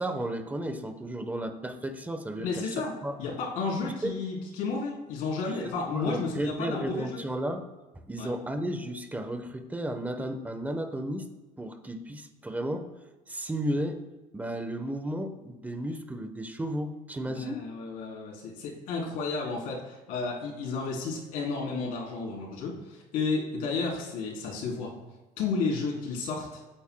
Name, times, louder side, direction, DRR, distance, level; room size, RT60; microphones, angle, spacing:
voice 1, 0.0-2.8 3.0-3.2 4.0-4.2 5.5-7.7 8.1-11.3 11.6-12.9 13.3-14.0 14.3-17.6, right 1 dB, 10° right, 7 dB, 1.1 m, -33 dB
voice 2, 2.4-2.9 3.2-7.2 8.2-8.3 17.3-24.9 25.4-26.6, left 4 dB, 75° left, -3 dB, 3.7 m, -32 dB
17.5 x 8.9 x 2.3 m, 1.1 s
cardioid pair, 110°, 14 cm